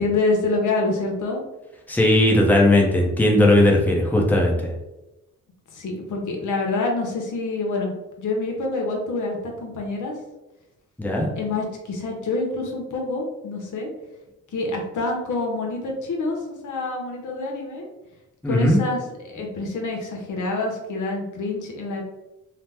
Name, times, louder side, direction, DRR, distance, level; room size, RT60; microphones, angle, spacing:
voice 1, 0.0-1.4 5.7-10.1 11.4-13.9 14.5-17.9 18.4-19.0 19.2-22.0, left 3 dB, 75° left, 1 dB, 0.8 m, -26 dB
voice 2, 1.9-4.7 11.0-11.3 18.4-18.8, left 1 dB, 5° left, -1 dB, 0.6 m, -18 dB
2.8 x 2.0 x 3.4 m, 0.99 s
cardioid pair, 90°, 31 cm